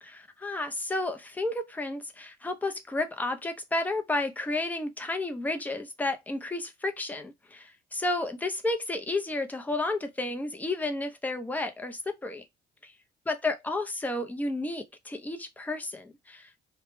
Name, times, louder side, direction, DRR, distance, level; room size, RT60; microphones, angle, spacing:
voice 1, 0.0-12.4 12.8-12.9 13.3-16.6, left 2 dB, 10° left, 0.5 m, -32 dB
2.2 x 2.1 x 3.1 m
cardioid pair, 110°, 17 cm